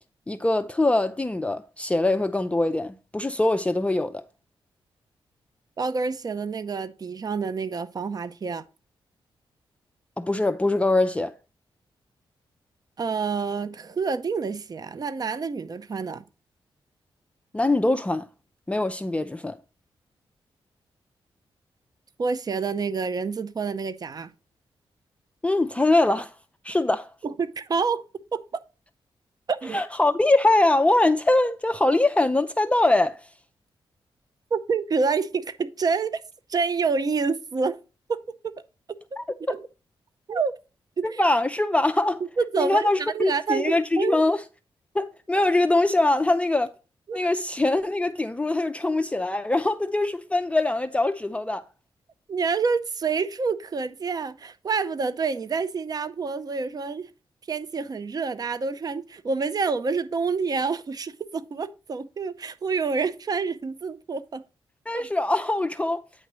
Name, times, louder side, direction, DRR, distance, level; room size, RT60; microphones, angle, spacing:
voice 1, 0.3-4.2 10.2-11.3 17.5-18.3 18.7-19.6 25.4-26.3 26.6-27.1 29.7-33.3 39.2-39.3 41.0-42.2 42.6-44.4 44.9-46.7 47.1-51.6 64.9-66.0, left 2 dB, 15° left, 0.4 m, -23 dB
voice 2, 5.8-8.6 13.0-16.2 22.2-24.3 27.2-28.0 28.3-28.6 29.5-29.8 34.5-36.2 36.5-37.8 38.1-38.6 38.9-39.0 39.5-39.7 40.3-40.5 41.0-41.2 42.4-44.2 47.1-47.2 52.3-57.1 57.5-64.4 64.9-65.0, right 5 dB, 45° right, 0.6 m, -28 dB
9.0 x 3.0 x 6.0 m
cardioid pair, 75°, 9 cm